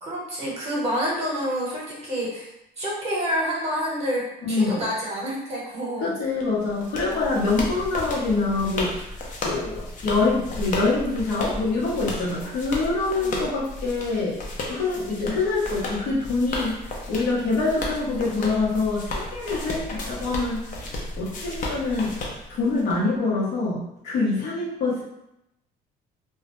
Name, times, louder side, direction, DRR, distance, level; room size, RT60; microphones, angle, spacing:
voice 1, 0.0-6.1 7.1-7.2 13.2-13.4, equal, 35° right, -4 dB, 0.9 m, -28 dB
voice 2, 4.4-4.8 6.0-9.0 9.4-20.7 21.2-22.1 22.5-25.0, left 3 dB, 80° left, -5 dB, 0.9 m, -25 dB
sound 1, 6.4-23.0, left 2 dB, 50° left, 0.6 m, -34 dB
2.3 x 2.0 x 2.9 m, 0.85 s
cardioid pair, 110°, 17 cm